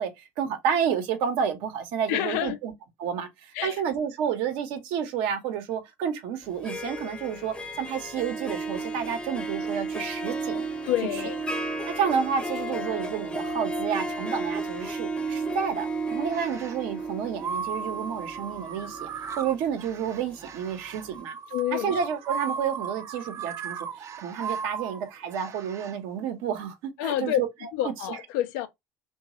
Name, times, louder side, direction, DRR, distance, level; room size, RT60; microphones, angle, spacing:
voice 1, 0.0-2.7 3.0-10.7 11.9-19.1 19.4-21.4 21.7-27.5, right 7 dB, 65° right, 0.8 m, -30 dB
voice 2, 2.1-2.6 3.5-3.8 10.8-11.4 21.5-22.0 27.0-27.4 27.7-28.7, left 12 dB, 70° left, 0.5 m, -28 dB
Harp, 6.5-20.4, right 2 dB, 10° left, 0.7 m, -33 dB
sound 1, 16.2-16.8 17.4-26.0, right 6 dB, 35° right, 0.4 m, -36 dB
3.0 x 2.2 x 2.8 m
hypercardioid pair, 75°, 9 cm